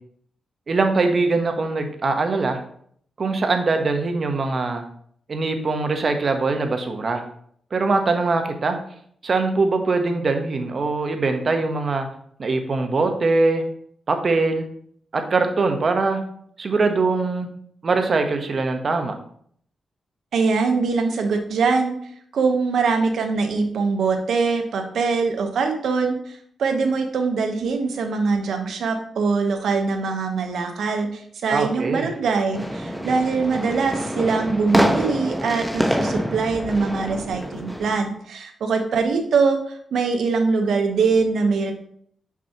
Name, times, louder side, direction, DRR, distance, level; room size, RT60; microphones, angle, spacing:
voice 1, 0.7-2.6 3.2-4.8 5.3-7.2 7.7-8.8 9.2-12.1 12.4-13.6 14.1-14.6 15.1-16.2 16.6-17.5 17.8-19.1 31.5-32.1, right 3 dB, 50° right, 6 dB, 0.9 m, -22 dB
voice 2, 20.3-22.0 22.3-41.7, right 4 dB, 80° right, 5 dB, 0.9 m, -22 dB
sound 1, 32.5-37.9, equal, 5° right, 1.0 m, -26 dB
6.0 x 5.8 x 2.9 m, 0.63 s
cardioid pair, 85°, 0 cm